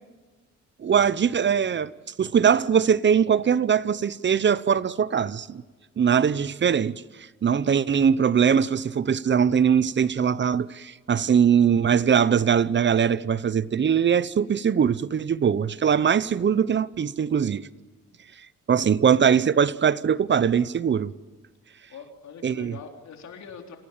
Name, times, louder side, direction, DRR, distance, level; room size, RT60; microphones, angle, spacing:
voice 1, 0.8-1.9 2.2-5.6 6.0-6.9 7.4-17.7 18.7-21.1 22.4-22.7, right 7 dB, 40° right, 0.8 m, -21 dB
voice 2, 21.9-23.8, left 6 dB, 65° left, 3.8 m, -43 dB
28.0 x 17.5 x 7.3 m
cardioid pair, 90°, 30 cm